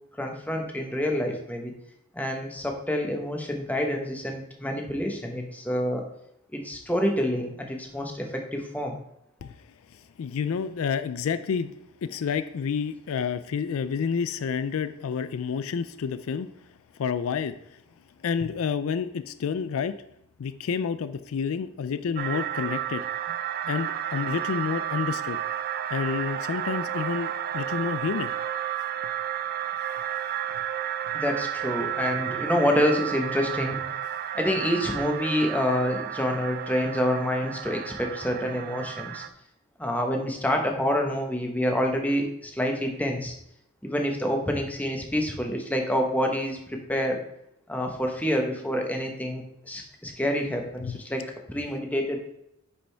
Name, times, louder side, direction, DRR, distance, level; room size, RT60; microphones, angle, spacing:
voice 1, 0.2-1.7 2.1-6.1 6.5-9.0 31.1-33.8 34.3-39.2 39.8-43.3 43.8-47.2 47.7-52.3, equal, 5° left, 2 dB, 1.0 m, -27 dB
voice 2, 9.9-11.7 12.0-16.5 17.0-17.8 18.2-20.0 20.4-23.4 23.6-25.4 25.9-28.3 50.8-51.0, left 6 dB, 75° left, 12 dB, 0.4 m, -29 dB
sound 1, 22.2-39.3, right 10 dB, 45° right, 0.4 m, -32 dB
9.9 x 5.2 x 3.4 m, 0.79 s
head